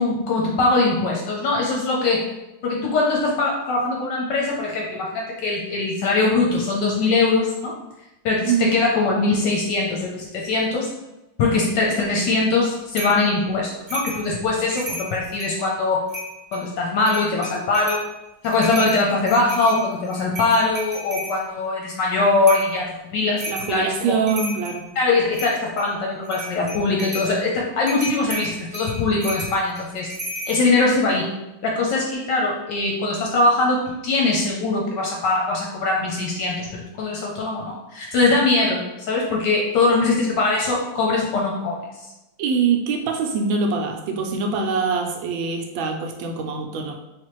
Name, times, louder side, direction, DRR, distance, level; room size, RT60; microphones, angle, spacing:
voice 1, 0.0-2.3 2.6-7.7 8.2-10.9 11.4-16.0 16.5-18.0 18.4-24.1 25.0-30.1 30.5-31.3 31.6-41.8, left 3 dB, 75° left, -2 dB, 1.2 m, -21 dB
voice 2, 8.5-8.8 23.5-24.9 42.4-46.9, right 5 dB, 85° right, 3 dB, 1.4 m, -23 dB
sound 1, 13.0-13.2 13.9-14.2 14.6-15.6 16.1-16.6 17.0-18.1 18.4-21.4 22.5-22.7 23.4-23.7 24.1-24.8 25.3-25.9 26.2-27.3 27.9-30.6, right 1 dB, 40° right, 0.7 m, -33 dB
3.3 x 3.1 x 2.9 m, 0.96 s
omnidirectional pair, 2.1 m